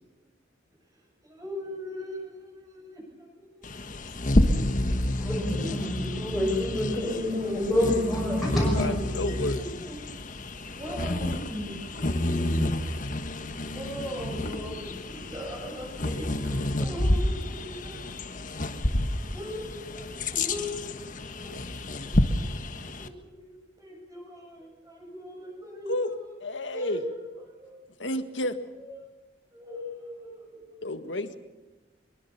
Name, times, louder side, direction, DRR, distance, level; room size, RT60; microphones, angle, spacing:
voice 1, 0.9-5.3 7.3-10.0 10.8-12.7 13.7-18.1 19.3-22.5 22.8-26.3 26.7-27.7 28.7-29.0 29.5-30.7, left 1 dB, 20° right, 0 dB, 7.9 m, -40 dB
Bird vocalization bird call bird song, 3.6-23.1, left 1 dB, 45° left, 1.4 m, -29 dB
voice 2, 5.2-8.9, left 1 dB, ahead, -6 dB, 6.2 m, -27 dB
voice 3, 8.8-9.6 25.9-26.1 26.4-27.0 28.0-28.6 30.8-31.4, left 1 dB, 80° left, 9 dB, 1.8 m, -31 dB
24.5 x 23.0 x 7.0 m, 1.1 s
head